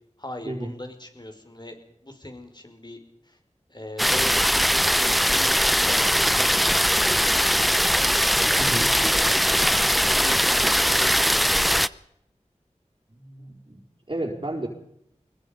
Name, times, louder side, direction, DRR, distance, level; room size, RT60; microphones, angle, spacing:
voice 1, 0.2-1.8 2.0-3.0 3.2-3.4 3.7-7.5 8.4-11.9, left 1 dB, 35° left, 5 dB, 5.3 m, -40 dB
sound 1, 4.0-11.9, equal, ahead, 0.7 m, -20 dB
voice 2, 8.6-8.9 13.1-13.8 14.1-14.7, right 1 dB, 45° right, -2 dB, 4.7 m, -32 dB
24.5 x 22.0 x 5.3 m, 0.76 s
wide cardioid pair, 50°, 12 cm